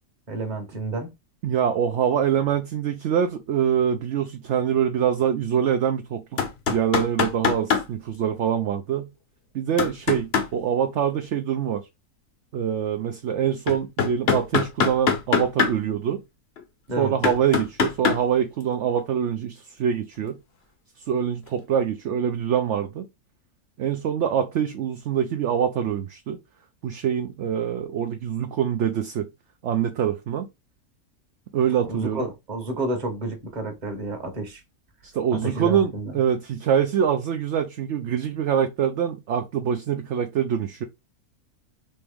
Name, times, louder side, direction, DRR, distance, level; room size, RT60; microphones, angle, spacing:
voice 1, 0.3-1.1 16.9-17.1 31.8-34.6 35.3-36.2, right 2 dB, 30° right, 1.1 m, -30 dB
voice 2, 1.4-6.4 6.7-9.1 9.5-11.8 12.5-16.2 17.0-20.4 21.1-23.1 23.8-26.4 26.8-29.3 29.6-30.5 31.5-32.3 35.0-40.8, right 8 dB, 65° right, 0.7 m, -24 dB
sound 1, 6.4-7.9 9.8-10.5 13.7-15.7 16.6-16.7 17.2-18.2 21.5-21.6, left 6 dB, 50° left, 0.9 m, -22 dB
4.3 x 3.0 x 3.5 m
omnidirectional pair, 1.6 m